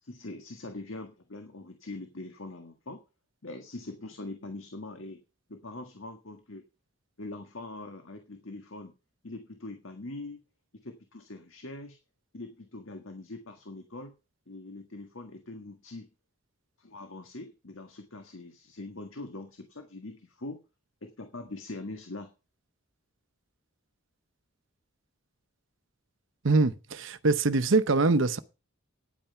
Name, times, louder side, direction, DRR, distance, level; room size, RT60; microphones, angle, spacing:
voice 1, 0.0-3.0 3.4-5.2 5.5-6.6 7.2-8.9 9.2-10.4 10.7-12.0 12.3-14.1 14.5-16.1 16.8-20.6 21.0-22.3, left 2 dB, 75° left, 1.6 m, -42 dB
voice 2, 26.4-28.4, right 3 dB, 65° right, 0.8 m, -23 dB
10.0 x 8.9 x 5.7 m
head